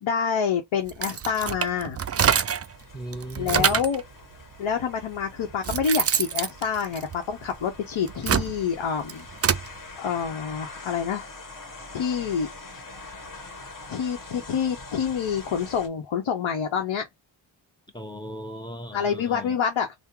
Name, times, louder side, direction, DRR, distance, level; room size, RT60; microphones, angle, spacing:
voice 1, 0.0-2.0 3.4-4.0 4.6-9.3 10.0-11.3 11.9-12.5 13.9-17.1 18.9-19.9, left 7 dB, 85° left, 0.8 m, -27 dB
sound 1, 0.9-2.7 3.1-4.0 4.8-4.9 5.4-7.5 8.0-9.7, right 7 dB, 35° right, 0.4 m, -25 dB
sound 2, 2.0-15.9, left 3 dB, 45° left, 1.4 m, -44 dB
voice 2, 2.9-3.8 17.9-19.6, equal, 10° left, 0.9 m, -37 dB
3.7 x 2.1 x 4.3 m
wide cardioid pair, 80°, 46 cm